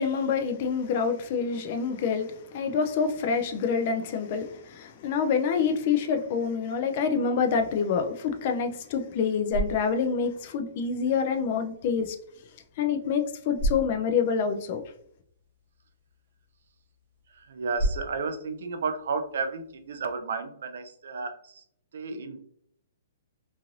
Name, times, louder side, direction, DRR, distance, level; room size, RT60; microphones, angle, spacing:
voice 1, 0.0-12.2 12.8-14.8, left 6 dB, 40° left, 0.4 m, -27 dB
sound 1, 9.1-20.2, right 1 dB, 40° right, 0.9 m, -37 dB
voice 2, 17.3-21.6 21.9-22.4, right 4 dB, 65° right, 0.4 m, -33 dB
3.0 x 2.5 x 2.6 m
hypercardioid pair, 165°, 0 cm